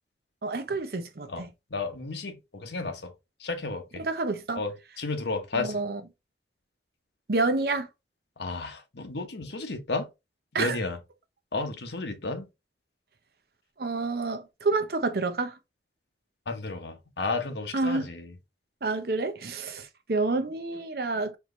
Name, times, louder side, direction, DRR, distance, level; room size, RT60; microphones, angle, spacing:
voice 1, 0.4-1.5 4.0-4.6 5.5-6.0 7.3-7.9 10.5-10.8 13.8-15.6 17.7-18.1 18.8-21.4, right 3 dB, 55° right, 0.7 m, -28 dB
voice 2, 1.3-3.1 3.4-4.0 4.5-5.8 8.4-10.1 10.5-11.0 11.5-12.4 16.5-18.3, left 3 dB, 75° left, 0.9 m, -33 dB
4.5 x 2.8 x 3.1 m
head